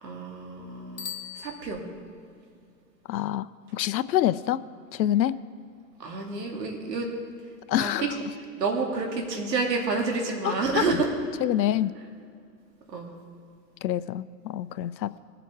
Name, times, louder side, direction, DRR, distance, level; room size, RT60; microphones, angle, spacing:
voice 1, 0.0-1.1 1.4-1.8 6.0-7.1 7.8-8.1 8.6-11.0 12.9-13.1, right 4 dB, 75° right, 1 dB, 2.7 m, -29 dB
Bicycle bell, 0.9-2.3, left 8 dB, 65° left, 1.6 m, -40 dB
voice 2, 3.1-3.5 3.7-4.6 4.9-5.4 7.7-8.2 10.4-10.8 11.4-11.9 13.8-15.2, left 12 dB, 85° left, 15 dB, 0.6 m, -26 dB
21.5 x 7.6 x 4.6 m, 2.4 s
hypercardioid pair, 170°, 50 cm